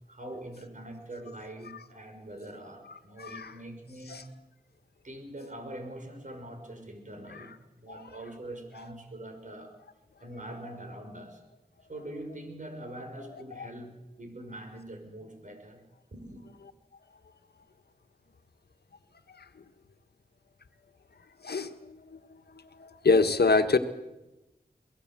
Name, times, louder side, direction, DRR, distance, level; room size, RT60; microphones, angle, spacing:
voice 1, 0.1-4.3 5.0-9.8 10.2-11.4 11.9-15.8 16.1-16.5, right 1 dB, 50° right, 5 dB, 5.9 m, -43 dB
voice 2, 3.2-3.5 4.1-4.2 7.3-7.4 13.6-13.7 21.4-22.0 22.8-23.8, left 4 dB, 80° left, 9 dB, 1.6 m, -25 dB
22.5 x 18.5 x 7.7 m, 1.0 s
cardioid pair, 45°, 16 cm